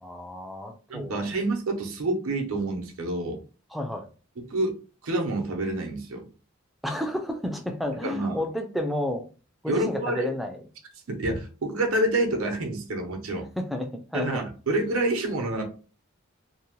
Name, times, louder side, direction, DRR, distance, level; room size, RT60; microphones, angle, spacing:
voice 1, 0.0-1.3 3.7-4.1 6.8-9.3 9.6-10.6 13.6-14.4, left 1 dB, ahead, 5 dB, 0.3 m, -31 dB
voice 2, 0.9-3.4 4.4-4.8 5.0-6.3 8.0-8.4 9.7-10.3 11.1-13.5 14.1-15.6, right 2 dB, 85° right, 3 dB, 0.7 m, -28 dB
2.7 x 2.0 x 3.0 m, 0.35 s
head